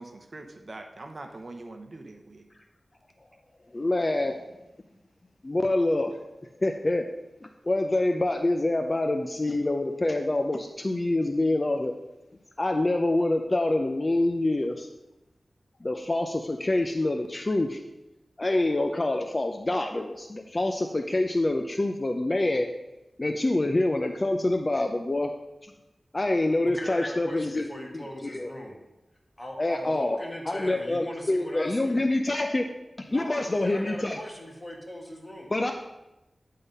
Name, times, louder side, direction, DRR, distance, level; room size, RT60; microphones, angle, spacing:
voice 1, 0.0-2.5, right 2 dB, 50° right, 4 dB, 0.8 m, -43 dB
voice 2, 3.7-4.4 5.4-6.1 6.6-7.0 7.7-11.9 12.6-14.9 15.8-17.8 18.4-22.7 23.2-25.3 25.6-25.7 26.1-27.7 27.9-28.5 29.6-30.2 30.5-32.7 33.1-34.2 35.5-35.7, left 2 dB, 35° left, 5 dB, 0.5 m, -26 dB
voice 3, 26.7-28.8 29.4-32.0 33.1-35.5, left 1 dB, 20° left, 0 dB, 1.7 m, -40 dB
9.9 x 3.8 x 5.4 m, 0.96 s
wide cardioid pair, 65°, 0 cm